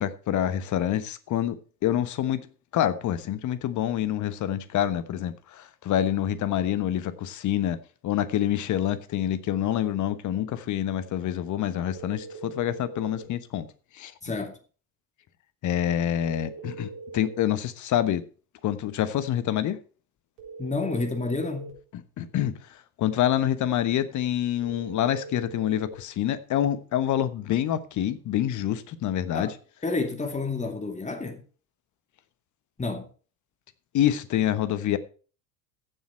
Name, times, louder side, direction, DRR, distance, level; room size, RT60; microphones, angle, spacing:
voice 1, 0.0-2.5 2.7-7.8 8.0-13.6 14.0-14.1 15.6-18.2 18.6-19.8 21.9-22.5 23.0-29.5 33.9-35.0, left 11 dB, 40° left, 1.2 m, -27 dB
sound 1, 11.9-13.3 16.1-17.5 20.4-21.8 24.6-26.0, right 4 dB, 55° right, 4.0 m, -41 dB
voice 2, 14.2-14.6 20.6-21.7 29.3-29.5 29.8-31.4 32.8-33.1, left 3 dB, 15° left, 2.4 m, -29 dB
15.0 x 7.4 x 4.4 m
figure-of-eight pair, 70°, 46 cm